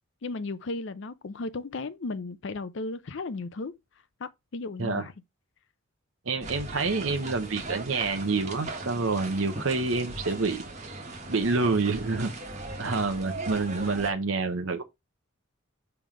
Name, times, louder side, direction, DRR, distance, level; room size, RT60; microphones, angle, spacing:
voice 1, 0.2-3.7 4.2-5.1, left 3 dB, 60° left, 0.5 m, -35 dB
voice 2, 6.3-11.0 11.3-12.3 12.8-14.8, right 3 dB, 70° right, 0.9 m, -28 dB
sound 1, 6.4-14.1, right 2 dB, 35° right, 1.5 m, -38 dB
5.8 x 3.4 x 5.0 m
head